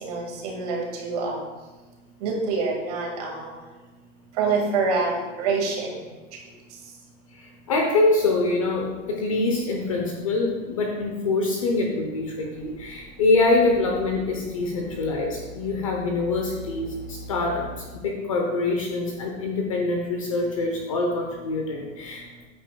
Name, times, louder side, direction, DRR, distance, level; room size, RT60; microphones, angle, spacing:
voice 1, 0.0-1.4 2.2-3.5 4.4-5.1 5.4-5.9, right 4 dB, 30° right, 0 dB, 1.9 m, -26 dB
voice 2, 7.3-22.4, left 3 dB, 25° left, 1 dB, 0.8 m, -25 dB
sound 1, 12.5-17.8, right 2 dB, 5° right, 0.6 m, -43 dB
14.0 x 9.1 x 2.3 m, 1.2 s
hypercardioid pair, 180°, 39 cm